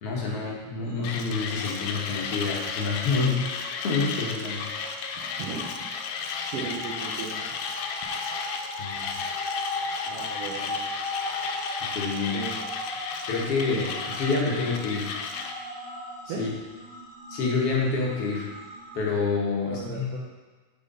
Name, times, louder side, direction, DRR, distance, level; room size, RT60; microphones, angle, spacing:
voice 1, 0.0-4.7 8.8-9.1 11.8-12.4 13.3-15.2 16.3-16.5 17.3-18.5 18.9-20.2, left 4 dB, 55° left, -3 dB, 1.8 m, -28 dB
sound 1, 0.8-19.2, left 2 dB, 40° left, 1.2 m, -39 dB
Mechanisms, 1.0-15.6, left 5 dB, 85° left, 2.3 m, -34 dB
voice 2, 6.3-7.5 10.0-10.8 12.3-12.6 16.3-16.4 19.7-20.2, right 5 dB, 70° right, -4 dB, 1.4 m, -36 dB
6.6 x 6.2 x 5.4 m, 1.3 s
omnidirectional pair, 3.9 m